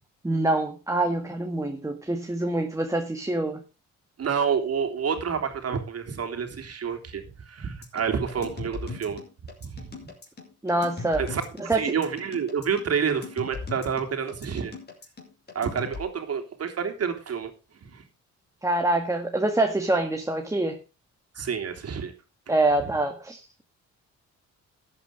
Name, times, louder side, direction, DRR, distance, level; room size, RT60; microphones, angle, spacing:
voice 1, 0.2-3.6 10.6-11.2 11.7-11.8 18.6-20.8 22.5-23.6, right 2 dB, 10° right, 4 dB, 1.7 m, -25 dB
voice 2, 4.2-9.2 9.7-9.9 11.2-11.4 11.8-14.7 15.5-17.5 17.8-18.0 21.3-22.1, right 6 dB, 55° right, 5 dB, 3.2 m, -28 dB
sound 1, 7.8-16.0, left 4 dB, 35° left, 5.3 m, -39 dB
12.5 x 8.8 x 5.1 m, 0.31 s
cardioid pair, 90°, 30 cm